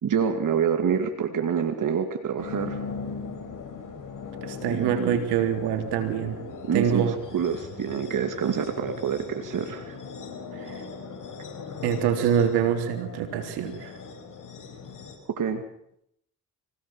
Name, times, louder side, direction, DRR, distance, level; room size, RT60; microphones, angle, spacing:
voice 1, 0.0-2.8 4.7-5.3 6.7-10.0 15.3-15.6, right 7 dB, 55° right, 5 dB, 2.5 m, -27 dB
sound 1, 2.4-15.1, left 5 dB, 55° left, 7.0 m, -39 dB
voice 2, 4.4-6.4 6.7-7.2 10.5-10.8 11.8-13.9, right 8 dB, 80° right, 5 dB, 3.7 m, -25 dB
25.5 x 17.5 x 7.5 m, 0.75 s
supercardioid pair, 65°, 38 cm